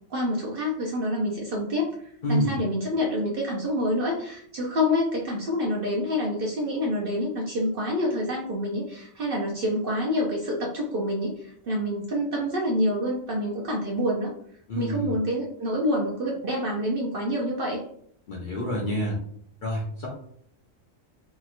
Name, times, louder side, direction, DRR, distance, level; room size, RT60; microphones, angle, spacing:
voice 1, 0.1-14.3 14.8-17.8, left 1 dB, 60° right, -2 dB, 0.6 m, -27 dB
voice 2, 2.2-2.6 14.7-15.1 18.3-19.2 19.6-20.1, equal, 50° left, -3 dB, 0.6 m, -28 dB
3.0 x 2.8 x 2.4 m, 0.64 s
omnidirectional pair, 1.4 m